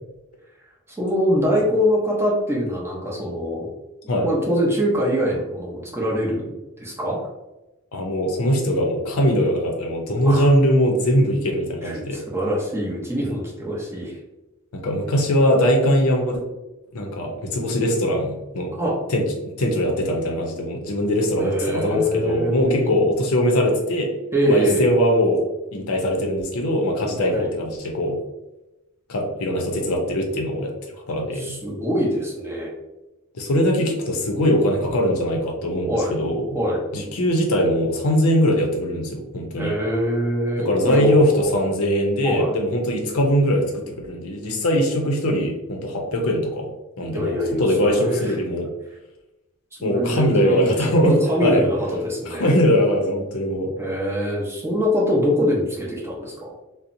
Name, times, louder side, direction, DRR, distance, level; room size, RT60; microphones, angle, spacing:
voice 1, 1.0-3.7 4.0-7.2 10.2-10.5 11.8-14.2 18.8-19.0 21.3-22.9 24.3-24.8 27.3-27.5 31.3-32.7 35.9-36.2 36.5-36.8 39.6-41.3 42.2-42.5 47.1-48.4 49.8-52.5 53.8-56.5, equal, 10° right, -4 dB, 0.6 m, -24 dB
voice 2, 7.9-12.2 14.7-16.4 16.9-18.7 19.1-24.1 24.5-25.4 25.7-28.2 29.1-30.7 31.1-31.6 33.4-36.6 36.9-39.7 40.6-46.7 47.0-48.7 49.8-51.1 51.4-51.7 52.4-53.7, equal, 80° left, 1 dB, 0.5 m, -21 dB
2.7 x 2.0 x 2.5 m, 1.0 s
head